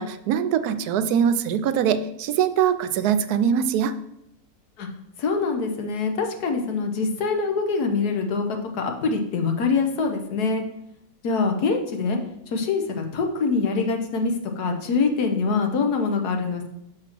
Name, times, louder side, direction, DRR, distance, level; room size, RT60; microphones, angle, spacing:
voice 1, 0.0-3.9, right 8 dB, 85° right, 11 dB, 1.1 m, -22 dB
voice 2, 5.2-10.6 11.2-12.2 12.5-16.7, left 4 dB, 90° left, 4 dB, 1.5 m, -24 dB
5.8 x 5.2 x 6.0 m, 0.82 s
omnidirectional pair, 1.6 m